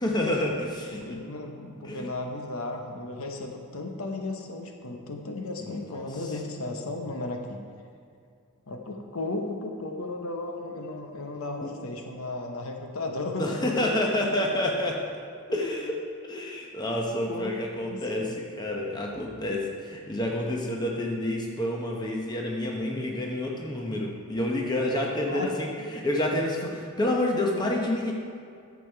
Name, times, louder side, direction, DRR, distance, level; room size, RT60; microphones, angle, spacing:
voice 1, 0.0-1.2 1.8-2.1 5.6-6.3 11.6-11.7 13.4-15.0 15.5-28.1, left 1 dB, 20° left, -1 dB, 1.0 m, -29 dB
voice 2, 1.1-7.6 8.7-13.5 17.3-18.4 25.3-25.5, left 2 dB, 70° left, 3 dB, 0.9 m, -35 dB
10.0 x 7.1 x 4.6 m, 2.3 s
head